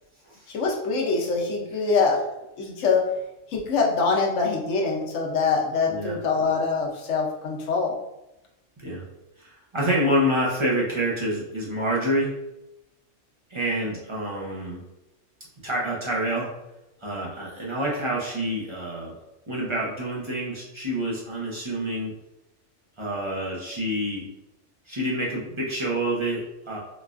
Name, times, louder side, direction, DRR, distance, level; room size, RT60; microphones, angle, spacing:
voice 1, 0.5-2.2 2.6-3.0 3.5-7.9, left 4 dB, 85° left, -1 dB, 1.0 m, -24 dB
voice 2, 5.9-6.2 8.8-9.0 9.4-12.3 13.5-14.8 15.6-16.5 17.0-19.2 19.5-22.1 23.0-24.3 24.9-26.8, equal, 35° right, -5 dB, 0.5 m, -27 dB
4.0 x 2.3 x 2.4 m, 0.92 s
omnidirectional pair, 1.3 m